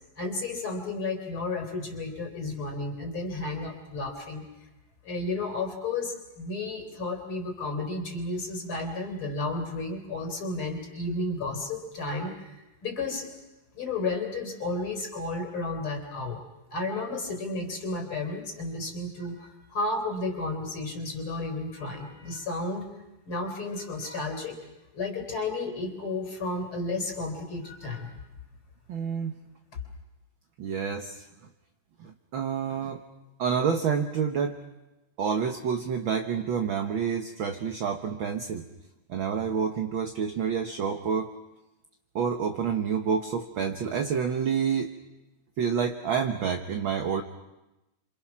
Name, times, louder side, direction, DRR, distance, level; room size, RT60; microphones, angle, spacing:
voice 1, 0.2-4.4 5.0-12.5 12.8-13.3 13.7-16.4 16.7-22.8 23.3-24.6 24.9-28.2, left 2 dB, 45° left, 4 dB, 4.6 m, -32 dB
voice 2, 28.9-29.3 30.6-31.2 32.0-33.0 33.4-34.6 35.2-38.6 39.1-41.3 42.2-44.9 45.6-47.2, right 6 dB, 55° right, 4 dB, 1.6 m, -28 dB
28.5 x 26.0 x 6.1 m, 0.99 s
omnidirectional pair, 3.3 m